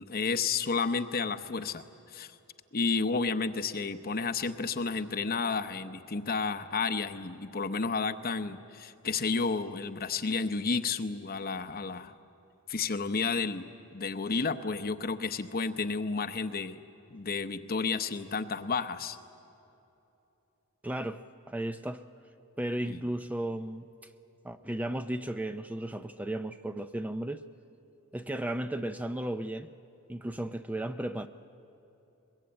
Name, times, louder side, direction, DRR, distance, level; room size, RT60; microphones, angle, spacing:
voice 1, 0.0-1.8 2.1-2.3 2.7-12.1 12.7-16.8 17.1-19.2 22.9-23.0, left 4 dB, 45° left, 9 dB, 0.8 m, -31 dB
voice 2, 20.8-22.1 22.6-23.9 24.4-27.4 28.1-29.7 30.1-31.3, right 1 dB, 5° right, 8 dB, 0.5 m, -34 dB
22.5 x 21.5 x 8.8 m, 2.9 s
head